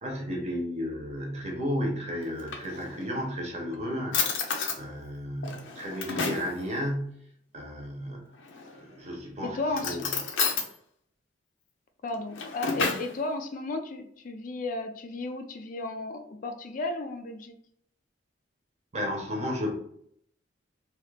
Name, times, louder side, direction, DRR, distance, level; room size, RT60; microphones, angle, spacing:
voice 1, 0.0-7.1 7.5-8.3 8.8-9.6 9.8-10.1 18.9-19.7, equal, 35° right, 1 dB, 0.8 m, -33 dB
Drawer open or close, 2.2-3.2 3.7-3.8 4.1-4.8 5.4-6.5 8.4-8.9 9.7-10.7 12.1-13.1, left 5 dB, 85° left, 0.6 m, -31 dB
voice 2, 9.5-10.0 12.0-17.6, left 2 dB, 45° left, 5 dB, 0.3 m, -34 dB
2.9 x 2.4 x 3.2 m, 0.67 s
head